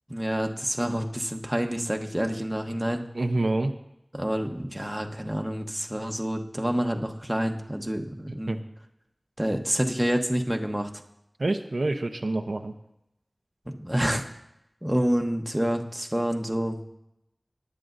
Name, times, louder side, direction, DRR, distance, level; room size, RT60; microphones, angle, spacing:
voice 1, 0.1-3.0 4.1-8.6 9.4-10.9 13.7-14.3 14.8-16.9, equal, 10° right, 3 dB, 1.0 m, -28 dB
voice 2, 3.1-3.7 8.5-8.6 11.4-12.7, right 2 dB, 75° right, 5 dB, 0.7 m, -27 dB
18.5 x 10.0 x 2.6 m, 0.85 s
wide cardioid pair, 50°, 0 cm